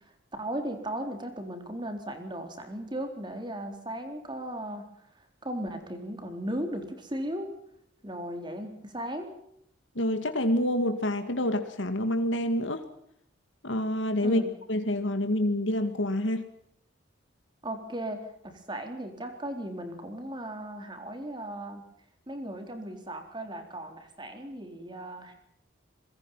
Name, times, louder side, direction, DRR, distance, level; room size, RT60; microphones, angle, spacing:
voice 1, 0.4-4.9 5.4-6.8 7.1-7.5 8.0-9.3 14.2-14.5 17.6-18.2 18.7-21.8 22.3-25.3, right 1 dB, 25° right, 5 dB, 4.0 m, -36 dB
voice 2, 10.0-12.8 13.6-14.4 14.7-16.4, left 1 dB, 80° left, 7 dB, 2.1 m, -27 dB
26.0 x 22.5 x 5.7 m, 0.74 s
head